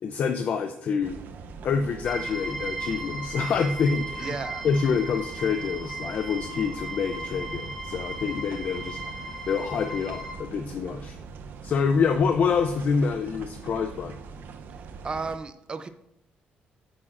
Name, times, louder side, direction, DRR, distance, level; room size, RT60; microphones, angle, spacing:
voice 1, 0.0-1.2 1.6-4.4 4.6-11.2 11.6-14.1, left 5 dB, 50° left, 0.5 m, -27 dB
sound 1, 1.0-15.4, right 5 dB, 65° right, 0.7 m, -42 dB
sound 2, 2.0-10.3, right 2 dB, ahead, 0.9 m, -37 dB
voice 2, 4.2-4.7 14.7-15.9, right 4 dB, 25° right, 0.5 m, -34 dB
9.0 x 8.4 x 2.5 m
cardioid pair, 160°, 3 cm